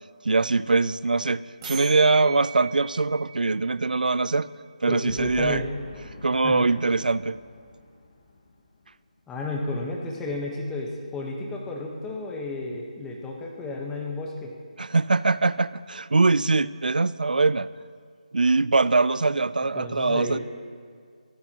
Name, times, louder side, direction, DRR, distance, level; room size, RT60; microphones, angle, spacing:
voice 1, 0.2-4.5 4.8-5.6 6.2-7.4 14.8-17.7 18.3-20.4, right 3 dB, 85° right, 18 dB, 0.5 m, -22 dB
sound 1, 1.6-4.4, right 7 dB, 25° right, 4.6 m, -39 dB
voice 2, 4.9-5.8 6.4-6.7 9.3-14.5 19.6-20.4, left 2 dB, 5° left, -1 dB, 1.3 m, -32 dB
Boom, 5.1-9.5, left 4 dB, 35° left, 1.9 m, -46 dB
23.0 x 14.5 x 3.0 m, 2.1 s
figure-of-eight pair, 165°, 4 cm